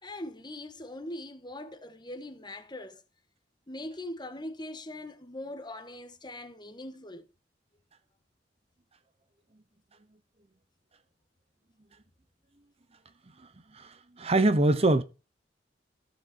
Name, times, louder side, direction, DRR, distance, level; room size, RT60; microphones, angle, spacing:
voice 1, 0.0-3.0 3.7-7.2, left 1 dB, 25° left, 1.5 m, -41 dB
voice 2, 13.7-15.0, right 2 dB, 35° right, 0.9 m, -24 dB
16.0 x 6.6 x 4.4 m
head